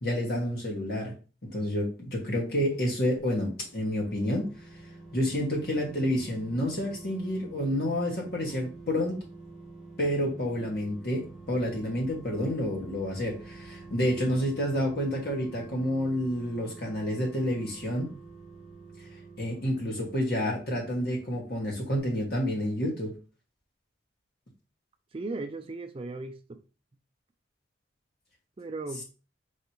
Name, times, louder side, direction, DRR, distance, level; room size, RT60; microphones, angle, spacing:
voice 1, 0.0-1.1 1.4-4.5 5.1-9.2 10.0-18.1 19.4-23.1, equal, 55° left, 1.6 m, -29 dB
sound 1, 3.5-21.7 22.0-22.1, right 3 dB, 5° right, 2.2 m, -48 dB
voice 2, 25.1-26.6 28.6-29.0, right 3 dB, 30° right, 0.4 m, -37 dB
4.8 x 3.2 x 3.0 m
head